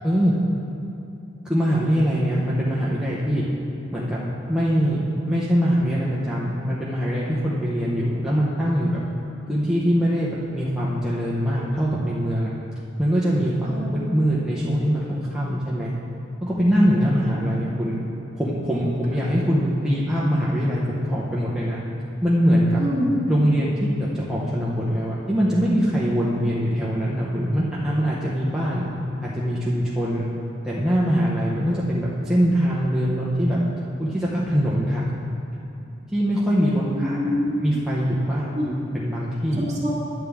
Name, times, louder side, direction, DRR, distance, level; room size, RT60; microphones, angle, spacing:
voice 1, 0.0-0.3 1.4-3.4 3.9-4.2 4.5-9.0 9.5-12.5 13.0-15.9 16.4-18.0 18.4-21.8 22.2-22.8 23.3-28.8 29.2-30.3 30.6-33.6 34.0-35.1 36.1-37.2 37.6-39.7, equal, 5° right, -7 dB, 0.7 m, -23 dB
voice 2, 16.8-17.3 19.2-19.3 22.8-23.2 36.8-37.8 38.5-38.7 39.6-39.9, left 1 dB, 35° right, -6 dB, 1.8 m, -27 dB
10.5 x 8.3 x 3.5 m, 2.9 s
head